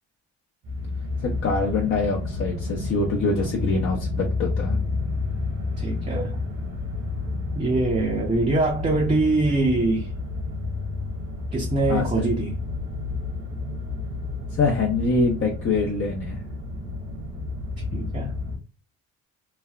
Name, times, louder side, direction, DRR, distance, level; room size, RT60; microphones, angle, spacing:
sound 1, 0.6-18.6, left 3 dB, 60° right, 1.2 m, -30 dB
voice 1, 1.2-4.8 11.9-12.3 14.5-16.4, left 3 dB, 45° left, 0.7 m, -24 dB
voice 2, 5.8-6.4 7.6-10.1 11.5-12.6 17.9-18.4, right 2 dB, 25° right, 0.6 m, -23 dB
3.2 x 2.2 x 2.3 m
cardioid pair, 90°, 30 cm